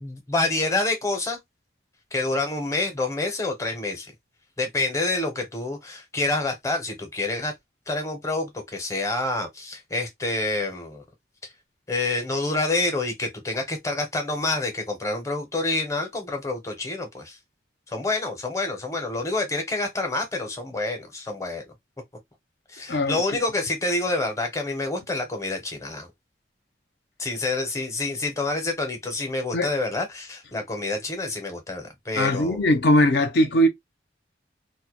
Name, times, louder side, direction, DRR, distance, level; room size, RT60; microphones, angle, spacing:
voice 1, 0.0-1.4 2.1-4.1 4.6-7.5 7.9-11.0 11.9-17.4 17.9-21.6 22.7-26.1 27.2-32.6, left 2 dB, 15° left, 0.6 m, -27 dB
voice 2, 32.2-33.7, equal, 65° left, 0.5 m, -20 dB
2.1 x 2.1 x 2.8 m
head